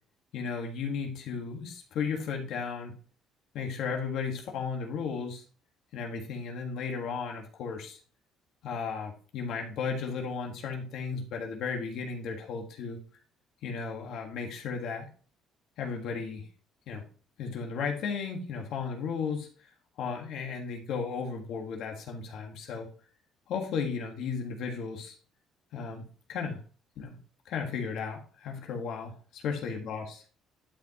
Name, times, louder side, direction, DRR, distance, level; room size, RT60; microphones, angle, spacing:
voice 1, 0.3-2.9 3.5-5.4 5.9-8.0 8.6-13.0 13.6-15.1 15.8-16.5 16.9-17.0 17.4-19.7 20.0-22.9 23.5-25.2 25.7-26.6 27.0-27.2 27.4-30.2, left 5 dB, 60° left, 2 dB, 1.5 m, -35 dB
11.5 x 5.0 x 2.9 m, 0.41 s
cardioid pair, 160°, 0 cm